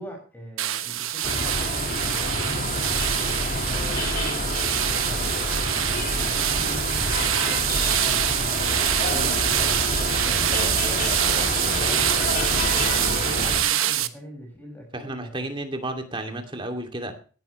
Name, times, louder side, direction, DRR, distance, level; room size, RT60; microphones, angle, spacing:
voice 1, 0.0-2.9 3.6-9.9 10.2-12.8 13.1-15.5, equal, 10° left, 1 dB, 5.9 m, -41 dB
sound 1, 0.6-14.1, right 12 dB, 75° right, 1.1 m, -25 dB
sound 2, 1.2-13.6, left 2 dB, 40° left, 1.8 m, -28 dB
voice 2, 14.9-17.1, right 1 dB, 25° right, 5 dB, 2.5 m, -32 dB
18.5 x 12.0 x 3.2 m, 0.38 s
head